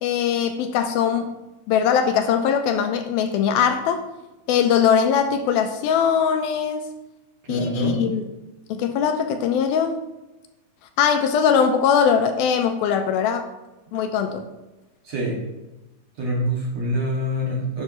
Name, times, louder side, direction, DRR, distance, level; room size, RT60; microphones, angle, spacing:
voice 1, 0.0-1.4 1.7-4.0 4.5-6.9 7.5-8.3 8.7-10.0 11.0-13.5 13.9-14.5, left 7 dB, 80° left, 6 dB, 2.4 m, -21 dB
voice 2, 7.5-8.0 15.0-15.4 16.2-17.8, equal, 50° right, -3 dB, 2.7 m, -25 dB
11.5 x 7.5 x 3.0 m, 1.0 s
omnidirectional pair, 4.5 m